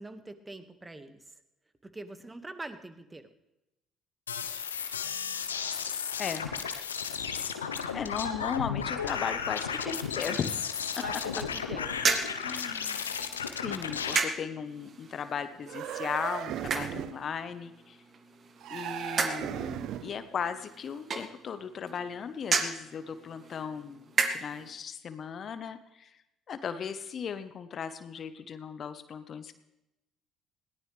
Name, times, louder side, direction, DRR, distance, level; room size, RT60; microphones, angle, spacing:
voice 1, 0.0-1.4 1.8-3.3 11.0-12.0, right 2 dB, 20° right, 9 dB, 1.8 m, -44 dB
sound 1, 4.3-14.2, left 7 dB, 90° left, 0.9 m, -34 dB
voice 2, 7.9-10.8 11.3-11.4 12.4-13.0 13.4-18.0 18.7-26.2 26.5-29.5, left 7 dB, 50° left, 11 dB, 1.1 m, -37 dB
sound 2, 11.9-24.7, right 4 dB, 45° right, 1.8 m, -35 dB
sound 3, 15.6-17.3 18.6-20.2, right 11 dB, 60° right, 0.5 m, -37 dB
21.0 x 17.5 x 3.4 m, 0.90 s
hypercardioid pair, 55°, 0 cm